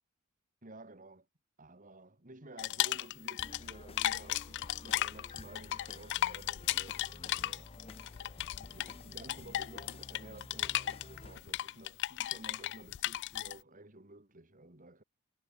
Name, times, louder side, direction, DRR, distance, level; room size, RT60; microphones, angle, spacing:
voice 1, 0.6-1.3 1.6-7.7 8.7-15.0, right 2 dB, 35° right, 2.8 m, -53 dB
sound 1, 2.6-3.7 4.0-13.6, left 14 dB, 50° left, 0.3 m, -35 dB
sound 2, 3.4-11.4, left 2 dB, 25° left, 0.8 m, -51 dB
head